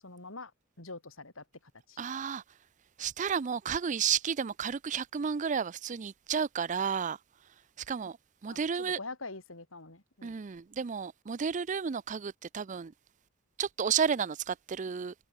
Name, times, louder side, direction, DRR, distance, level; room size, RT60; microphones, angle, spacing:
voice 1, 0.0-0.5 0.8-1.4 1.9-2.0 8.5-10.3, left 3 dB, 75° left, 4.5 m, -44 dB
voice 2, 2.0-2.4 3.0-7.2 7.9-8.2 8.4-9.0 10.2-12.9 13.6-15.1, right 7 dB, 35° right, 0.4 m, -32 dB
head